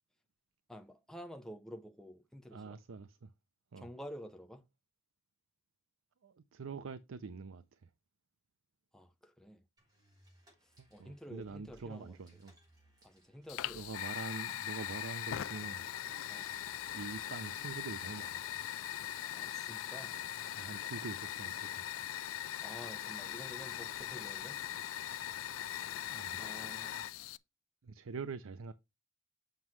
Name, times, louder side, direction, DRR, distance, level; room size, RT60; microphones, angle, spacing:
voice 1, 0.7-2.8 3.8-4.6 8.9-9.6 10.6-12.2 13.0-13.8 16.3-16.5 19.3-20.2 22.6-24.6 26.4-27.1, equal, 5° left, 0.5 m, -50 dB
voice 2, 2.5-3.3 3.7-3.9 6.2-7.9 10.8-12.6 13.7-16.2 16.9-18.5 20.5-21.8 26.1-26.4 27.8-28.7, right 4 dB, 85° right, 0.5 m, -45 dB
sound 1, 9.8-17.8, equal, 20° right, 3.6 m, -65 dB
Fire, 13.5-27.4, left 11 dB, 90° left, 0.4 m, -40 dB
7.5 x 6.0 x 3.1 m
head